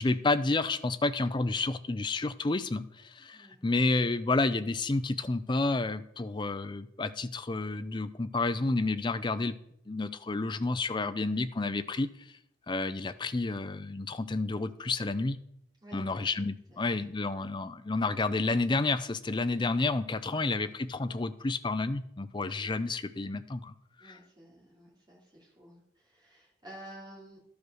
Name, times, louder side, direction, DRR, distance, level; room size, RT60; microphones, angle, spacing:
voice 1, 0.0-9.5 9.9-12.1 12.7-15.4 15.9-23.7 24.1-24.2, left 3 dB, 25° left, 12 dB, 0.5 m, -30 dB
voice 2, 15.8-16.3 16.7-17.1 20.3-20.8 22.5-22.7 24.0-27.4, right 1 dB, 20° right, -3 dB, 3.1 m, -52 dB
12.0 x 5.1 x 6.3 m, 0.76 s
head